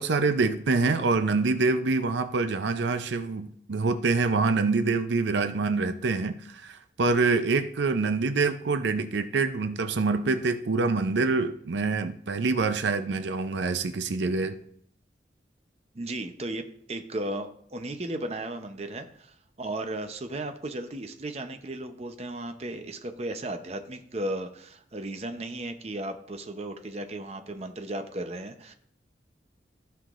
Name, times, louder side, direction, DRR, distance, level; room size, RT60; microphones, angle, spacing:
voice 1, 0.0-14.6, right 3 dB, 80° right, 10 dB, 0.5 m, -26 dB
voice 2, 15.9-16.6 16.9-28.7, right 1 dB, 35° right, 7 dB, 0.7 m, -35 dB
15.0 x 5.8 x 2.5 m, 0.66 s
head